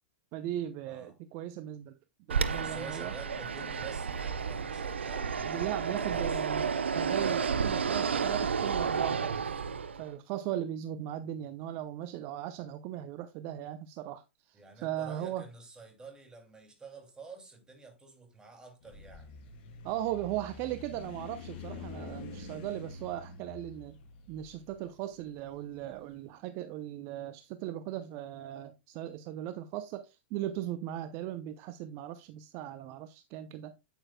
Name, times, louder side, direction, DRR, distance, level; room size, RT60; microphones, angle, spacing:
voice 1, 0.3-2.0 2.3-3.1 5.4-9.5 10.0-15.4 19.8-24.0 24.3-33.8, right 12 dB, 45° right, 0.6 m, -38 dB
voice 2, 0.9-1.2 2.5-6.4 14.5-19.3, right 3 dB, 15° right, 2.6 m, -49 dB
Fixed-wing aircraft airplane, 2.3-10.1, right 6 dB, 85° right, 0.6 m, -31 dB
sound 1, 18.8-26.0, left 3 dB, 55° left, 2.8 m, -46 dB
9.0 x 8.8 x 2.2 m
hypercardioid pair, 110°, 6 cm